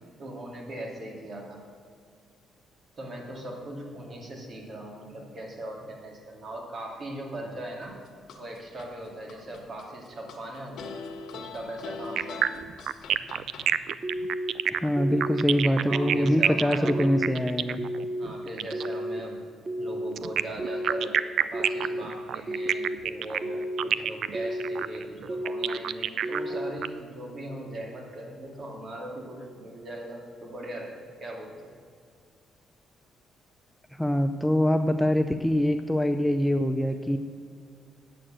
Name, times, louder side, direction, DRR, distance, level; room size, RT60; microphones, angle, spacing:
voice 1, 0.2-1.6 3.0-8.0 8.4-11.0 11.3-12.5 15.0-17.4 18.2-19.4 19.8-21.2 21.5-31.7, right 1 dB, 50° right, 0 dB, 2.6 m, -39 dB
sound 1, 7.8-8.9 9.3-10.4 10.8-13.7, left 5 dB, 70° left, 1.5 m, -41 dB
sound 2, 12.2-18.9 20.2-26.9, right 9 dB, 70° right, 0.3 m, -28 dB
sound 3, 14.0-14.5 15.0-15.5 15.9-16.4 16.8-17.3 17.8-18.3 18.7-19.2 19.7-20.1 20.6-21.1 21.5-22.0 22.5-23.0 23.4-23.9 24.3-24.8 25.3-25.8 26.2-26.7, equal, 30° right, 0.7 m, -32 dB
voice 2, 14.7-17.8 34.0-37.2, equal, 5° left, 7 dB, 0.5 m, -24 dB
9.2 x 6.5 x 7.5 m, 2.2 s
cardioid pair, 90°, 0 cm